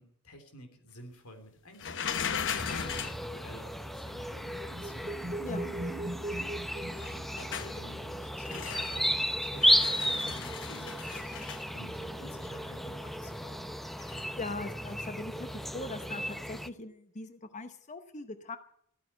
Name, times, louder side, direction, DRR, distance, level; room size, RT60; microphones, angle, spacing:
voice 1, 0.0-5.8 6.1-13.7, left 1 dB, 85° left, 6 dB, 3.6 m, -51 dB
sound 1, 1.8-3.2 7.0-7.8 8.4-9.1 9.4-11.7 14.0-14.2, left 7 dB, 60° left, 1.0 m, -37 dB
sound 2, 2.5-16.7, equal, ahead, 0.6 m, -34 dB
sound 3, 3.9-7.9, right 1 dB, 20° right, 1.7 m, -39 dB
voice 2, 5.4-5.7 14.0-18.6, left 2 dB, 35° left, 9 dB, 0.9 m, -41 dB
14.5 x 9.3 x 9.3 m, 0.69 s
head